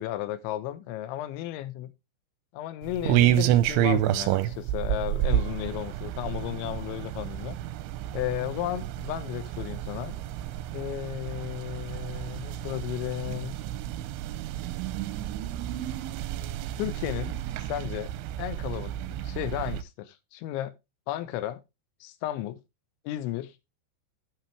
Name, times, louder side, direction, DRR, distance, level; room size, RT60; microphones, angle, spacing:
voice 1, 0.0-1.9 2.5-7.6 8.1-10.2 10.7-13.6 16.8-17.3 17.6-18.1 18.4-18.9 19.2-20.7 21.1-21.6 22.0-22.6 23.1-23.5, left 13 dB, 85° left, 3.2 m, -34 dB
sound 1, 2.8-19.8, right 13 dB, 90° right, 3.0 m, -30 dB
11.5 x 6.1 x 3.3 m
omnidirectional pair, 5.4 m